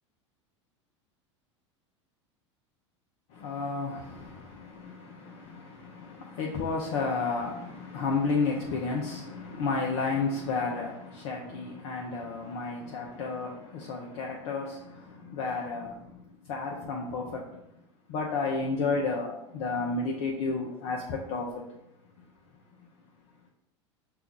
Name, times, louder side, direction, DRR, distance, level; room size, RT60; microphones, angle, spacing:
voice 1, 3.3-16.1 16.5-17.4 18.1-21.5, left 4 dB, 55° left, 0.7 m, -32 dB
5.6 x 2.5 x 3.7 m
hypercardioid pair, 85°, 16 cm